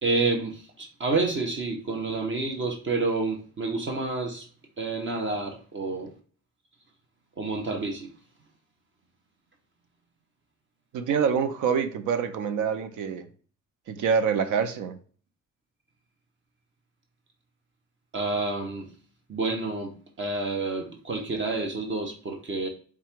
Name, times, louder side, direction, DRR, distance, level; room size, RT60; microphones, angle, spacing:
voice 1, 0.0-4.5 4.8-6.1 7.4-8.1 18.1-18.9 19.3-22.7, right 3 dB, 40° right, 1.0 m, -29 dB
voice 2, 10.9-13.3 13.9-15.0, right 6 dB, 85° right, 0.7 m, -26 dB
4.7 x 2.4 x 4.4 m
cardioid pair, 90°, 30 cm